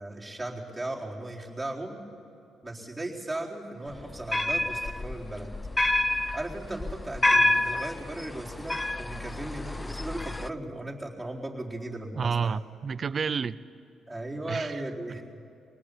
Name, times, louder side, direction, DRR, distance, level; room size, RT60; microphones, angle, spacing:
voice 1, 0.0-2.0 2.6-5.5 6.3-12.6 14.1-15.2, right 1 dB, 10° right, 4.2 m, -37 dB
sound 1, 3.9-10.5, left 1 dB, 15° left, 0.5 m, -28 dB
voice 2, 12.1-13.6 14.5-14.8, right 6 dB, 45° right, 0.6 m, -30 dB
22.5 x 19.0 x 8.5 m
cardioid pair, 90°, 0 cm